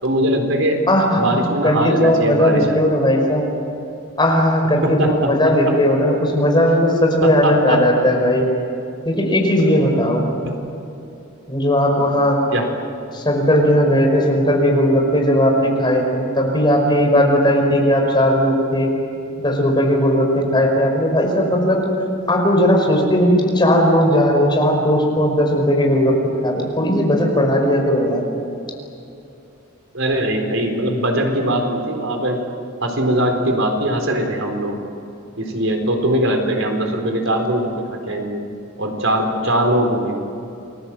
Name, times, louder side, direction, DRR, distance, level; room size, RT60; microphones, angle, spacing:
voice 1, 0.0-0.8 1.1-2.8 4.8-5.7 7.2-7.9 10.4-10.6 12.5-12.7 29.9-32.4 32.8-34.8 35.4-38.4 38.8-40.1, right 1 dB, 80° right, 3 dB, 4.2 m, -21 dB
voice 2, 0.9-3.5 4.2-8.5 9.1-10.3 11.5-12.4 13.1-18.9 19.4-21.8 22.3-26.2 26.4-28.2, equal, 25° left, 1 dB, 5.3 m, -17 dB
29.5 x 21.5 x 7.7 m, 2.7 s
head